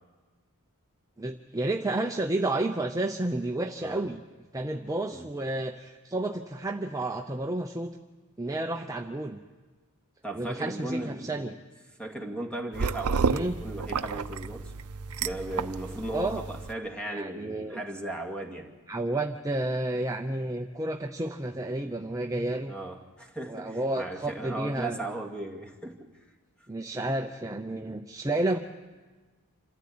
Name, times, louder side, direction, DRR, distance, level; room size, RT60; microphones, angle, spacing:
voice 1, 1.2-4.2 4.5-8.0 8.4-9.4 10.4-11.5 13.3-13.5 16.1-16.4 17.1-17.8 18.9-22.8 23.5-25.1 26.7-28.6, right 2 dB, 15° right, 4 dB, 0.6 m, -31 dB
voice 2, 10.2-11.5 12.0-18.7 22.7-26.1, right 1 dB, 5° left, 2 dB, 2.2 m, -37 dB
sound 1, 12.7-16.7, right 5 dB, 80° right, 0.6 m, -31 dB
27.0 x 14.0 x 8.7 m, 1.3 s
head